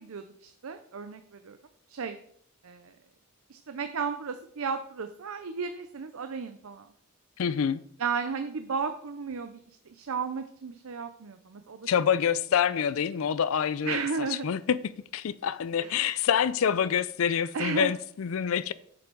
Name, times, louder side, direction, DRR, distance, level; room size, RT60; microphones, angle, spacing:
voice 1, 0.0-1.6 1.9-2.2 2.6-2.9 3.5-6.9 8.0-9.6 9.9-11.9 13.8-14.5 15.8-15.9 17.5-17.9, right 5 dB, 80° right, 0.6 m, -34 dB
voice 2, 7.4-7.8 11.9-18.7, left 8 dB, 75° left, 0.4 m, -27 dB
8.6 x 7.0 x 4.5 m
head